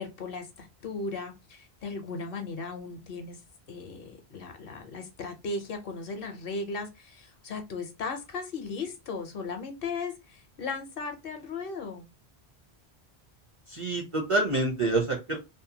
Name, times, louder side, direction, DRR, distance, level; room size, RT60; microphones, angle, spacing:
voice 1, 0.0-3.4 3.7-12.1, left 4 dB, 65° left, 0.8 m, -37 dB
voice 2, 13.7-15.4, right 2 dB, 40° right, 0.5 m, -27 dB
2.6 x 2.1 x 2.7 m
omnidirectional pair, 1.1 m